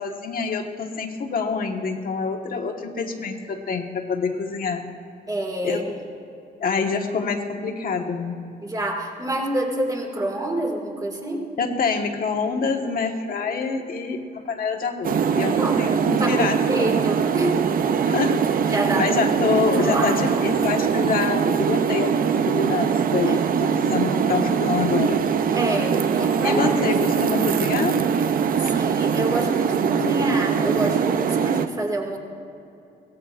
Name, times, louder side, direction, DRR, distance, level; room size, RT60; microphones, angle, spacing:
voice 1, 0.0-4.8 5.6-5.8 6.6-8.4 11.6-17.0 18.1-25.2 26.4-28.0, left 5 dB, 55° left, 3 dB, 1.3 m, -26 dB
voice 2, 5.3-5.9 8.6-11.5 15.5-15.8 16.2-17.6 18.6-19.1 19.8-20.5 23.2-23.4 25.5-26.7 28.7-32.2, right 1 dB, 20° right, 1 dB, 2.1 m, -27 dB
sound 1, 15.0-31.7, right 7 dB, 55° right, 0.6 m, -22 dB
22.5 x 17.0 x 2.5 m, 2.7 s
cardioid pair, 135°, 18 cm